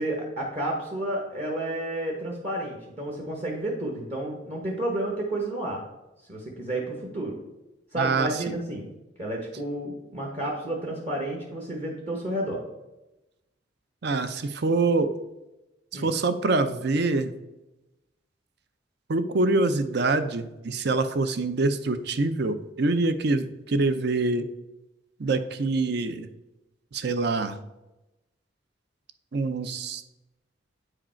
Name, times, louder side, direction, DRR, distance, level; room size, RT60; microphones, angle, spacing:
voice 1, 0.0-5.8 6.3-7.4 7.9-8.9 9.2-12.6 15.9-16.1, right 1 dB, 35° right, -1 dB, 1.0 m, -31 dB
voice 2, 8.0-8.3 14.0-15.1 15.9-17.3 19.1-24.5 25.2-26.3 26.9-27.6 29.3-30.0, right 3 dB, 60° right, 11 dB, 0.6 m, -25 dB
8.6 x 5.0 x 4.4 m, 0.98 s
head